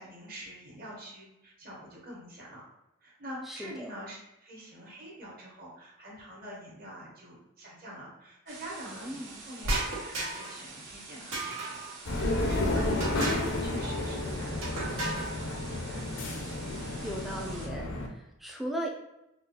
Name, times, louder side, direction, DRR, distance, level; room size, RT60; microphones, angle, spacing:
voice 1, 0.0-2.6 3.0-11.8 12.1-16.0, right 1 dB, 45° right, -4 dB, 1.1 m, -46 dB
voice 2, 3.5-3.9 8.9-9.4 17.0-18.9, right 1 dB, ahead, 0 dB, 0.3 m, -37 dB
sound 1, 8.5-17.7, right 3 dB, 65° right, 0.8 m, -47 dB
sound 2, 9.6-10.6 11.3-11.9 13.0-13.6 14.6-15.3, right 2 dB, 85° right, 1.0 m, -33 dB
sound 3, 12.0-18.1, left 1 dB, 65° left, 0.5 m, -31 dB
3.7 x 2.4 x 2.8 m, 0.90 s
head